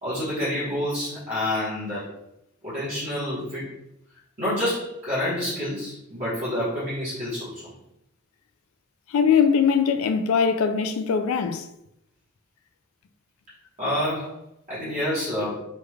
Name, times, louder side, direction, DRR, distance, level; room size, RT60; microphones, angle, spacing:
voice 1, 0.0-2.1 2.6-3.7 4.4-7.7 13.8-14.4 14.7-15.6, left 1 dB, 35° right, 1.1 m, -28 dB
voice 2, 9.1-11.7, left 6 dB, 75° left, 0.3 m, -21 dB
3.3 x 2.3 x 3.2 m
head